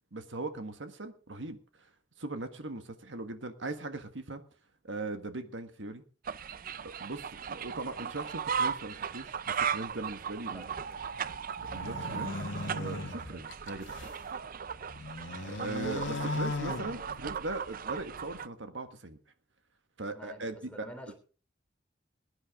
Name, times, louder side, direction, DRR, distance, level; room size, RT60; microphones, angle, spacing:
voice 1, 0.1-1.9 2.2-4.4 4.8-6.0 6.8-10.7 11.7-12.4 12.7-13.9 15.5-19.2 20.0-21.1, right 2 dB, 80° right, 8 dB, 1.5 m, -39 dB
sound 1, 6.3-18.5, right 7 dB, 50° right, 0.6 m, -37 dB
voice 2, 10.4-11.0 13.2-13.4 20.1-21.1, equal, 5° left, 4 dB, 3.2 m, -49 dB
sound 2, 11.6-14.2 14.7-17.5, left 2 dB, 85° left, 1.5 m, -38 dB
21.5 x 9.9 x 3.7 m, 0.37 s
head